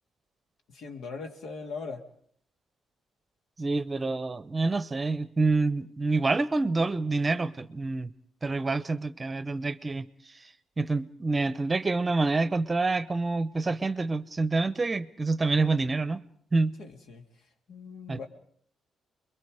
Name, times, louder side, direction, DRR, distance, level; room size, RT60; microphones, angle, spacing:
voice 1, 0.7-2.0 16.8-17.2 17.7-18.3, left 4 dB, 70° left, 4 dB, 2.4 m, -40 dB
voice 2, 3.6-8.1 8.4-10.1 10.8-16.2 16.5-16.8 18.1-18.2, right 3 dB, 25° right, 15 dB, 0.8 m, -27 dB
29.5 x 22.5 x 4.9 m, 0.62 s
cardioid pair, 90°, 0 cm